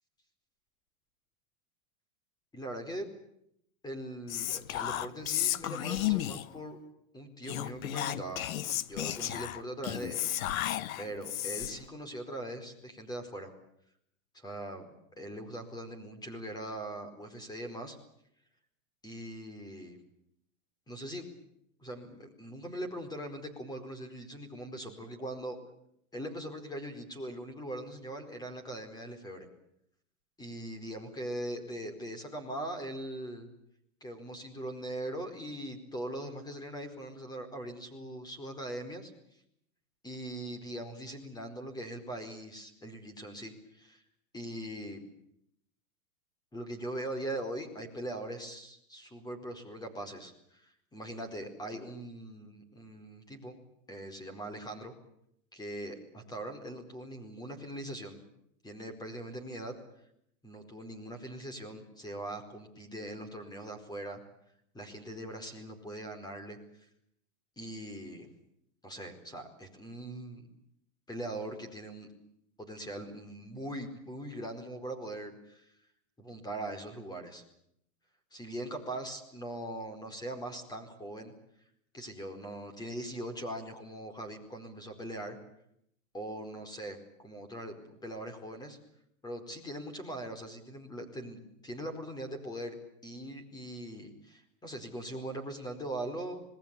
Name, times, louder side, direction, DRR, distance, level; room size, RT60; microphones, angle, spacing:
voice 1, 2.5-3.1 3.8-6.8 7.1-8.5 8.9-10.7 11.0-13.5 14.3-18.0 19.0-20.0 20.9-21.2 21.8-25.6 26.1-29.5 30.4-33.5 34.0-39.1 40.0-44.0 44.3-45.0 46.5-53.6 53.9-54.9 55.5-58.2 58.6-59.7 60.4-64.2 64.7-66.6 67.6-68.3 68.8-70.5 71.1-72.1 72.6-75.7 76.2-77.4 78.3-81.3 81.9-85.4 86.1-88.8 89.2-92.7 93.0-96.4, right 1 dB, 10° left, 7 dB, 4.6 m, -41 dB
Whispering, 4.3-6.6 7.4-11.9, left 13 dB, 70° left, 1.3 m, -33 dB
27.0 x 20.0 x 8.5 m, 0.74 s
supercardioid pair, 140°, 42 cm